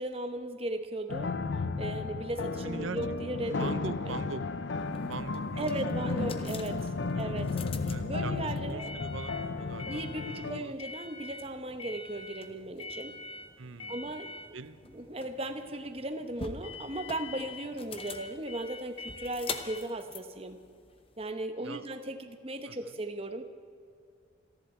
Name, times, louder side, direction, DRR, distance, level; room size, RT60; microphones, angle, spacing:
voice 1, 0.0-1.4 1.8-3.7 4.0-4.1 5.6-6.9 7.2-8.9 9.8-13.2 13.9-14.6 14.9-20.6 21.2-23.4, right 1 dB, 30° right, 8 dB, 1.0 m, -37 dB
sound 1, 1.1-10.6, left 3 dB, 65° left, 0.6 m, -34 dB
voice 2, 2.6-3.0 3.6-4.4 4.8-5.6 5.9-6.1 7.1-7.3 7.9-10.7 13.6-14.1 14.5-14.8 21.6-21.9 22.7-22.9, right 4 dB, 85° right, 13 dB, 0.7 m, -42 dB
sound 2, 4.9-21.3, left 4 dB, 30° left, 0.9 m, -44 dB
27.5 x 11.5 x 4.4 m, 2.4 s
head